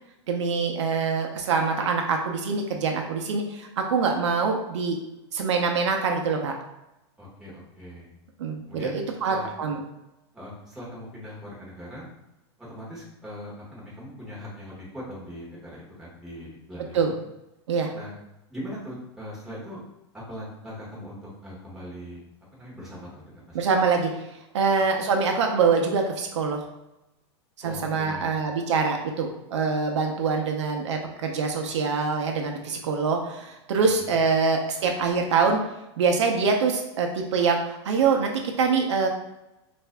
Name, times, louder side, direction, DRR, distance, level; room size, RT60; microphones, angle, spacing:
voice 1, 0.3-5.0 5.3-6.6 8.4-9.8 16.9-17.1 17.7-17.9 23.5-24.1 24.5-26.6 27.6-35.6 36.0-39.1, right 5 dB, 85° right, 3 dB, 0.7 m, -24 dB
voice 2, 7.2-8.1 8.7-9.0 9.3-9.5 10.3-12.1 12.6-17.1 17.9-18.1 18.5-19.8 20.1-22.2 22.5-23.7 27.6-28.4 34.0-34.2, equal, 5° right, -7 dB, 1.3 m, -40 dB
5.7 x 2.6 x 2.2 m, 0.92 s
supercardioid pair, 145°, 15 cm